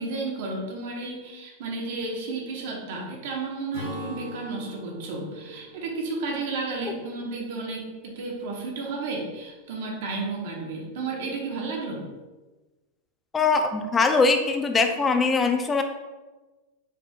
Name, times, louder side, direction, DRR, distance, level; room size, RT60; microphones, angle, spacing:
voice 1, 0.0-12.0, right 3 dB, 65° right, -1 dB, 1.0 m, -32 dB
Acoustic guitar / Strum, 3.7-7.4, left 1 dB, 75° left, 0.9 m, -41 dB
voice 2, 13.3-15.8, left 4 dB, 15° left, 6 dB, 0.4 m, -22 dB
4.8 x 3.5 x 2.3 m, 1.2 s
supercardioid pair, 140°, 0 cm